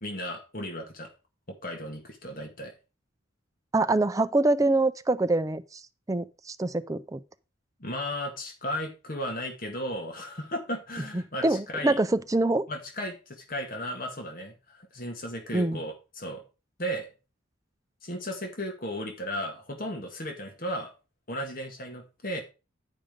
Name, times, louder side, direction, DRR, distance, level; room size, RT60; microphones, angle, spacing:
voice 1, 0.0-1.1 1.6-2.7 7.8-12.0 12.7-16.4 16.8-17.1 18.0-20.9 21.3-22.4, equal, 45° left, 1.8 m, -35 dB
voice 2, 3.7-5.8 6.1-7.2 11.4-12.7 15.5-15.8, right 2 dB, 15° right, 0.4 m, -25 dB
10.0 x 5.2 x 5.1 m
head